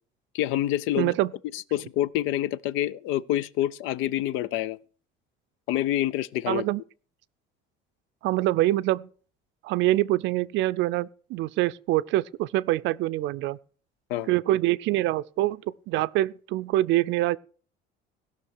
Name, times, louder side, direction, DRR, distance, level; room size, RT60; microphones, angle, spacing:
voice 1, 0.3-1.1 1.5-4.8 5.7-6.6 14.1-14.3, left 13 dB, 85° left, 0.6 m, -27 dB
voice 2, 1.0-1.3 6.5-6.8 8.2-9.1 9.6-13.6 14.3-17.4, right 16 dB, 70° right, 0.4 m, -25 dB
17.0 x 6.0 x 6.4 m
cardioid pair, 160°, 20 cm